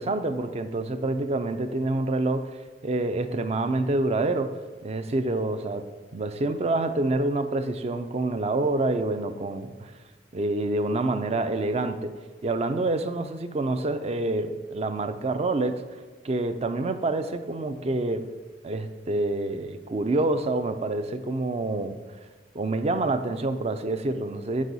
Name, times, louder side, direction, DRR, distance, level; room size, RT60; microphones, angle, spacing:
voice 1, 0.0-2.6 2.8-5.9 6.1-9.9 10.3-15.8 16.2-18.3 18.6-22.0 22.5-24.6, right 2 dB, 35° right, 10 dB, 0.4 m, -27 dB
7.4 x 6.2 x 4.0 m, 1.4 s
head